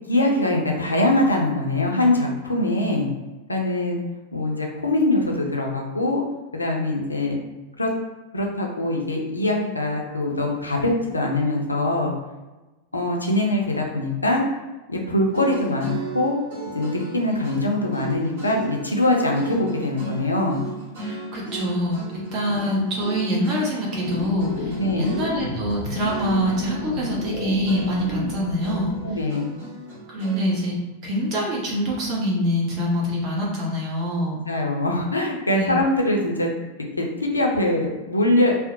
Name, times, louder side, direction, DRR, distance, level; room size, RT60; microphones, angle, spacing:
voice 1, 0.1-3.1 3.5-4.0 4.3-6.2 6.5-7.4 7.8-7.9 8.3-12.1 12.9-14.4 14.9-16.4 16.7-20.6 22.4-22.6 24.8-25.1 29.0-29.5 34.5-36.5 37.0-38.7, left 1 dB, 80° left, 0 dB, 0.4 m, -23 dB
sound 1, 15.2-25.8 26.0-27.4 27.6-30.6, right 3 dB, 55° right, 1.3 m, -36 dB
voice 2, 21.0-28.9 30.1-34.4 35.6-35.7, equal, 35° right, -4 dB, 0.8 m, -25 dB
sound 2, 24.0-29.2, left 3 dB, 25° left, 0.5 m, -32 dB
2.5 x 2.0 x 2.6 m, 1.1 s
figure-of-eight pair, 90°, 0 cm